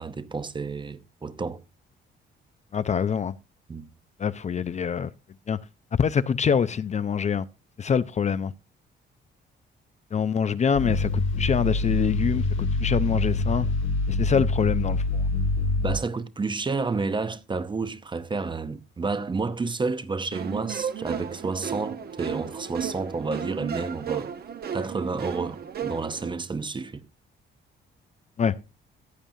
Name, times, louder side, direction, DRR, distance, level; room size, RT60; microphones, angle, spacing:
voice 1, 0.0-1.6 3.7-3.9 15.8-24.3 24.7-27.1, right 4 dB, 25° right, 0.7 m, -30 dB
voice 2, 2.7-3.4 4.2-5.1 5.5-5.6 5.9-7.5 7.8-8.5 10.1-13.7 14.1-15.2 28.4-28.5, left 7 dB, 35° left, 0.5 m, -25 dB
sound 1, 10.7-16.0, left 3 dB, 75° left, 1.8 m, -25 dB
sound 2, 20.3-26.3, right 8 dB, 50° right, 1.0 m, -34 dB
14.5 x 8.7 x 2.7 m
cardioid pair, 90°, 20 cm